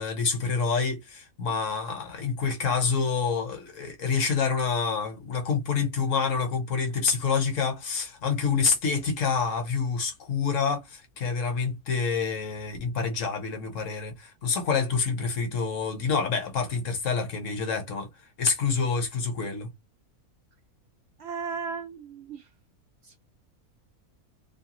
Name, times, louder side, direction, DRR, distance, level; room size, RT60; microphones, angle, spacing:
voice 1, 0.0-18.1 18.4-19.7, left 5 dB, 60° left, 1.2 m, -27 dB
voice 2, 21.2-22.5 23.0-23.2, right 5 dB, 70° right, 0.6 m, -35 dB
2.7 x 2.2 x 2.9 m
omnidirectional pair, 1.6 m